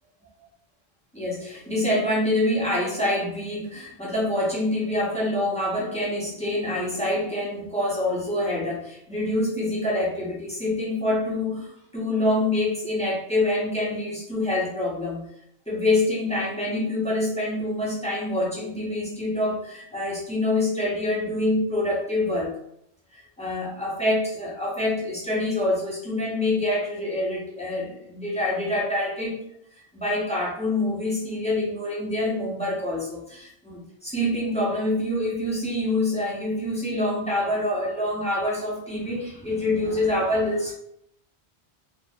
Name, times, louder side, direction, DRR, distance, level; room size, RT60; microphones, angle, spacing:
voice 1, 1.1-15.3 15.7-22.6 23.1-29.4 29.9-40.7, left 1 dB, 10° left, -5 dB, 0.6 m, -26 dB
2.5 x 2.0 x 3.4 m, 0.72 s
omnidirectional pair, 1.1 m